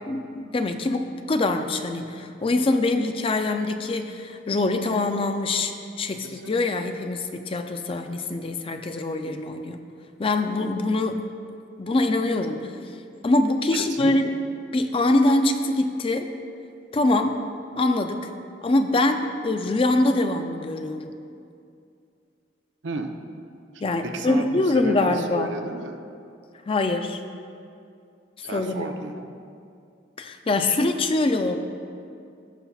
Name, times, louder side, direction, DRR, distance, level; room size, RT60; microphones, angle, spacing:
voice 1, 0.1-9.9 10.2-11.2 11.8-12.7 13.2-14.2 14.7-16.3 16.9-17.5 17.8-18.3 18.6-21.1 23.8-25.5 26.7-27.2 28.5-28.9 30.2-31.6, left 2 dB, 30° left, 6 dB, 0.4 m, -24 dB
voice 2, 13.7-14.1 22.8-23.1 24.0-26.0 28.4-29.3, right 2 dB, 85° right, 5 dB, 0.6 m, -32 dB
16.5 x 5.6 x 2.4 m, 2.5 s
head